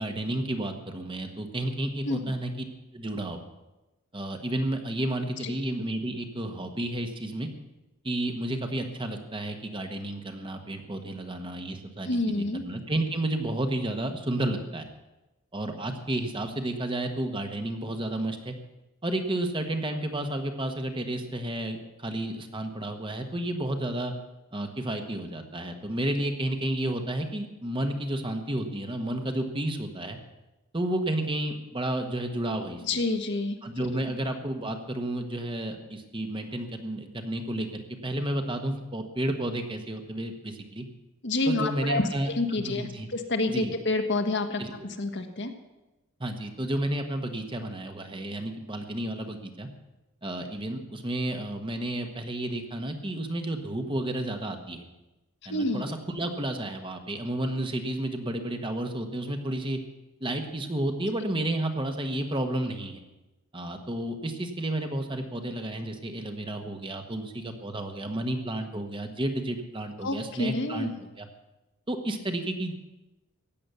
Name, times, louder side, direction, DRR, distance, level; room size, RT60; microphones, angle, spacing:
voice 1, 0.0-2.5 2.9-3.4 4.1-7.5 8.0-12.3 12.6-14.9 15.5-18.5 19.0-24.1 24.5-30.2 30.7-32.8 33.6-40.8 41.5-42.3 42.6-43.1 43.5-43.7 44.6-44.7 46.2-49.7 50.2-54.9 55.5-59.8 60.2-63.0 63.5-71.3 71.9-72.7, right 1 dB, 25° right, 5 dB, 1.3 m, -31 dB
voice 2, 12.0-12.6 32.8-33.9 41.2-45.5 55.5-55.8 70.0-70.9, left 2 dB, 55° left, 6 dB, 1.4 m, -28 dB
15.5 x 9.8 x 6.9 m, 1.0 s
head